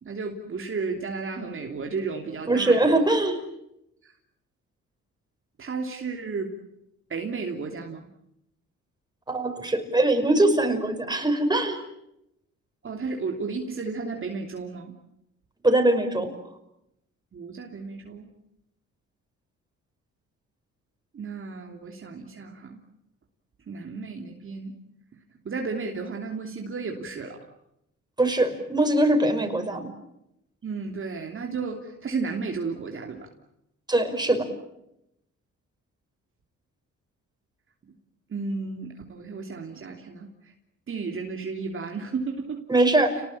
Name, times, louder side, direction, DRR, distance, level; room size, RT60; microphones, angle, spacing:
voice 1, 0.0-2.9 4.0-4.1 5.6-6.5 7.1-8.1 12.8-14.9 17.3-18.3 21.1-22.8 23.7-24.8 25.4-27.4 30.6-33.3 37.8-37.9 38.3-40.3 40.9-42.6 43.1-43.2, right 4 dB, 45° right, 2 dB, 3.1 m, -33 dB
voice 2, 2.5-3.4 9.3-11.8 15.6-16.3 28.2-29.9 33.9-34.5 42.7-43.1, right 2 dB, 15° right, 5 dB, 5.6 m, -22 dB
29.5 x 19.5 x 8.7 m, 0.82 s
cardioid pair, 90°, 30 cm